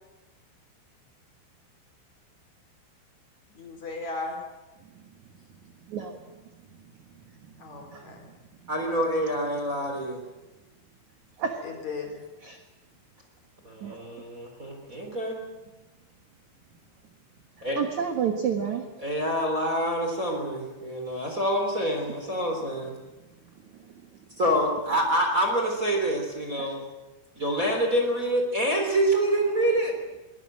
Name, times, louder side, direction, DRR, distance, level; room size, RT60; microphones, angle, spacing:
voice 1, 3.5-4.4 7.6-8.2 11.6-12.2, left 3 dB, 40° left, 3 dB, 4.4 m, -36 dB
voice 2, 5.9-6.2 7.2-7.3 7.7-8.1 11.4-11.6 12.4-12.6 13.8-14.1 17.8-18.9 23.7-23.8 26.6-26.7, right 7 dB, 65° right, 5 dB, 1.9 m, -30 dB
voice 3, 8.7-10.2 13.6-15.4 17.6-17.8 19.0-23.0 24.4-26.8 27.4-29.9, right 1 dB, 20° right, 2 dB, 3.2 m, -26 dB
23.0 x 18.5 x 7.6 m, 1.1 s
omnidirectional pair, 5.6 m